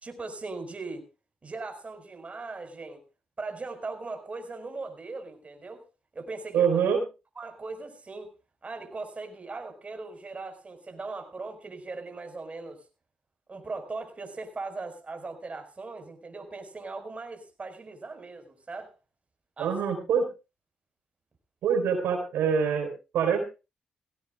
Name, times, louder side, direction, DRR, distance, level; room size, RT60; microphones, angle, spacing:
voice 1, 0.0-1.0 1.4-3.0 3.4-5.8 6.1-6.7 7.3-8.3 8.6-12.8 13.5-18.9 19.6-19.8, right 3 dB, 35° right, 6 dB, 4.8 m, -39 dB
voice 2, 6.5-7.0 19.6-20.3 21.6-23.4, right 6 dB, 85° right, 4 dB, 4.3 m, -25 dB
19.5 x 17.0 x 2.4 m, 0.29 s
cardioid pair, 60°, 4 cm